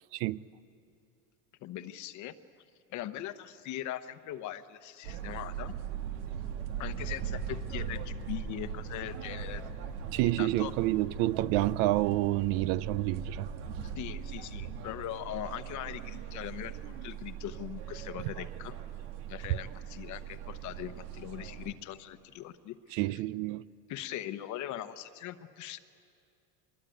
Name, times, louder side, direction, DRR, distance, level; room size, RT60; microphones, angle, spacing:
voice 1, 1.6-2.3 2.9-5.7 6.8-9.6 10.4-10.7 13.8-18.8 19.3-23.0 23.9-25.8, left 12 dB, 45° left, 1.0 m, -40 dB
sound 1, 5.0-21.7, right 7 dB, 85° right, 2.1 m, -40 dB
voice 2, 10.1-13.5 22.9-23.6, right 17 dB, 60° right, 0.6 m, -28 dB
24.5 x 21.5 x 9.2 m
cardioid pair, 150°, 42 cm